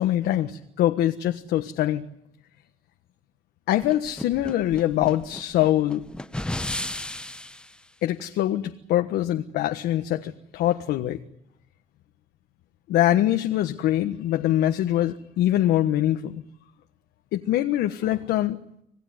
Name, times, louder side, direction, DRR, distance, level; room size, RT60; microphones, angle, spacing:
voice 1, 0.0-2.0 3.7-6.0 8.0-11.2 12.9-16.4 17.3-18.6, left 13 dB, 80° left, 6 dB, 1.4 m, -23 dB
sound 1, 3.8-7.7, left 1 dB, 5° left, 1.0 m, -34 dB
27.0 x 18.0 x 9.6 m, 0.76 s
cardioid pair, 110°, 17 cm